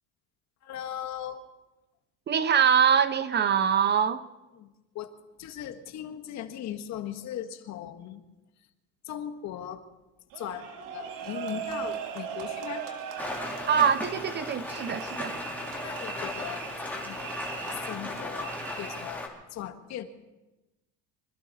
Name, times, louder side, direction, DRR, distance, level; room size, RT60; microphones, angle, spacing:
voice 1, 0.6-1.4 4.6-4.7 4.9-5.1 5.4-8.2 9.0-9.8 10.4-12.9 15.8-16.6 17.0-17.2 17.5-20.0, left 11 dB, 50° left, 1.6 m, -38 dB
voice 2, 2.3-4.2 13.7-15.4, right 7 dB, 30° right, 0.7 m, -24 dB
sound 1, 10.3-19.3, right 8 dB, 65° right, 2.4 m, -39 dB
Rain, 13.2-19.3, left 2 dB, 5° left, 2.6 m, -37 dB
25.0 x 13.0 x 4.2 m
cardioid pair, 125°, 35 cm